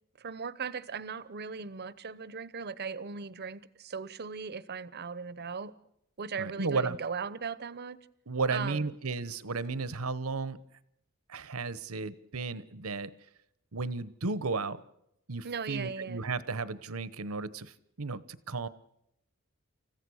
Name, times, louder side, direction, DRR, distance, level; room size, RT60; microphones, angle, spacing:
voice 1, 0.2-5.7 6.2-8.0 8.5-9.0 15.4-16.2, right 5 dB, 50° right, 18 dB, 0.8 m, -38 dB
voice 2, 6.4-7.0 8.3-10.6 11.3-13.1 13.7-14.8 15.3-17.7 18.0-18.7, right 4 dB, 80° right, 17 dB, 1.0 m, -34 dB
29.0 x 15.0 x 6.4 m, 0.80 s
head